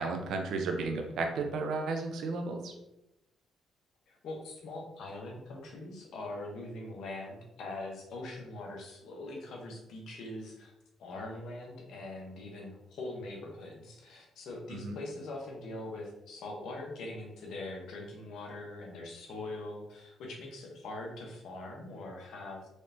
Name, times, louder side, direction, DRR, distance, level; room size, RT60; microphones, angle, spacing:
voice 1, 0.0-2.7 14.7-15.0, right 3 dB, 75° right, 4 dB, 0.7 m, -33 dB
voice 2, 4.1-10.7 11.0-22.7, left 2 dB, 75° left, 0 dB, 1.1 m, -42 dB
4.7 x 3.3 x 2.8 m, 0.90 s
cardioid pair, 90°, 0 cm